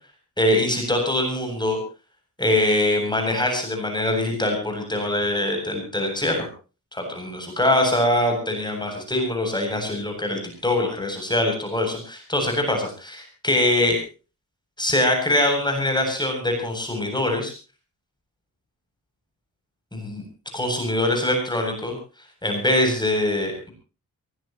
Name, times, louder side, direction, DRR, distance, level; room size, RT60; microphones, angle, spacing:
voice 1, 0.4-1.8 2.4-6.5 6.9-14.0 14.8-17.5 19.9-20.2 20.5-21.9 22.4-23.7, left 1 dB, 10° left, 3 dB, 7.9 m, -23 dB
23.0 x 19.5 x 3.1 m, 0.35 s
wide cardioid pair, 120°, 35 cm